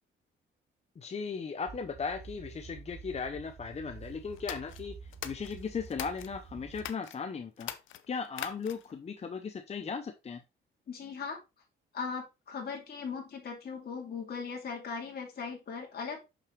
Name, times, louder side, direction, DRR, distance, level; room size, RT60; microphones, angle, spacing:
voice 1, 1.0-7.7 8.1-10.4, left 5 dB, 35° left, 7 dB, 0.7 m, -37 dB
sound 1, 1.7-6.9, right 5 dB, 35° right, 0.9 m, -49 dB
sound 2, 4.4-6.3 6.7-7.2 7.6-9.0, left 11 dB, 80° left, 0.8 m, -42 dB
voice 2, 10.9-11.4 11.9-16.2, left 5 dB, 50° left, -1 dB, 2.6 m, -39 dB
6.5 x 6.0 x 3.2 m, 0.25 s
cardioid pair, 90°, 20 cm